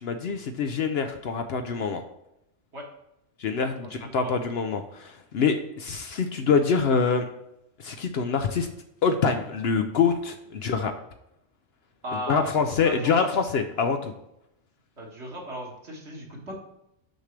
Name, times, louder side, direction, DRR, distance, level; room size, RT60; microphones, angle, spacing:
voice 1, 0.0-2.0 3.4-7.3 7.8-8.7 9.0-10.9 12.3-14.1, left 5 dB, 60° left, 6 dB, 0.8 m, -25 dB
voice 2, 3.8-4.3 12.0-13.3 15.0-16.6, right 1 dB, 55° right, -2 dB, 2.0 m, -36 dB
6.5 x 6.3 x 3.3 m, 0.85 s
omnidirectional pair, 1.3 m